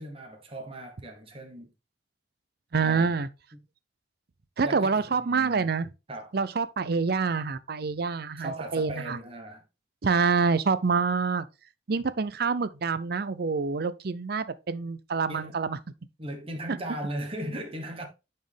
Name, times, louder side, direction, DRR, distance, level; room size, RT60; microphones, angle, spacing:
voice 1, 0.0-1.7 2.8-3.1 3.5-3.6 4.6-5.7 6.1-6.3 8.4-9.6 15.3-15.6 16.2-18.1, right 1 dB, 30° right, 1.2 m, -38 dB
voice 2, 2.7-3.3 4.6-5.9 6.3-9.2 10.0-11.5 11.9-15.8, right 5 dB, 55° right, 0.6 m, -26 dB
9.4 x 4.4 x 3.5 m
head